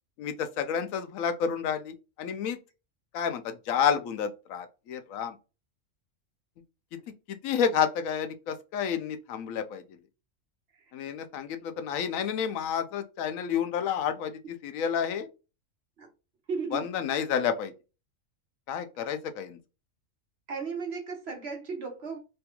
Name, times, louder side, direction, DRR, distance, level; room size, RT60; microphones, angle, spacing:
voice 1, 0.2-2.6 3.1-5.4 7.3-9.8 10.9-15.3 16.7-17.7 18.7-19.6, left 7 dB, 90° left, 1.0 m, -30 dB
voice 2, 16.5-16.9 20.5-22.2, right 5 dB, 55° right, 1.1 m, -35 dB
3.3 x 2.2 x 2.8 m
omnidirectional pair, 1.4 m